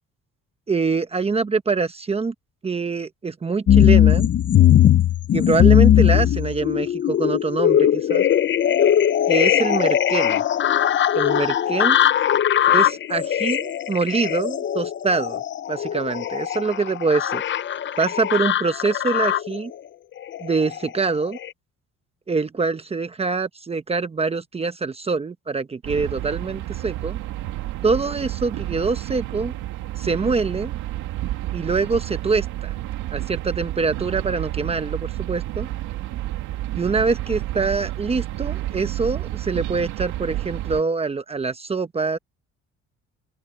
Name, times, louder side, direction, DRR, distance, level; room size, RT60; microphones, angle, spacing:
voice 1, 0.7-2.3 2.6-4.3 5.3-8.2 9.3-10.4 11.1-12.1 12.7-15.4 15.7-17.4 18.0-19.7 20.4-21.4 22.3-27.2 27.8-29.5 30.0-30.7 31.5-32.8 33.1-35.7 36.8-42.2, right 4 dB, 20° right, 1.0 m, -24 dB
sound 1, 3.7-19.6 20.2-20.9 21.4-21.5, left 10 dB, 40° left, 0.7 m, -19 dB
sound 2, 25.8-40.8, right 14 dB, 85° right, 2.5 m, -30 dB
open air
cardioid pair, 130°, 29 cm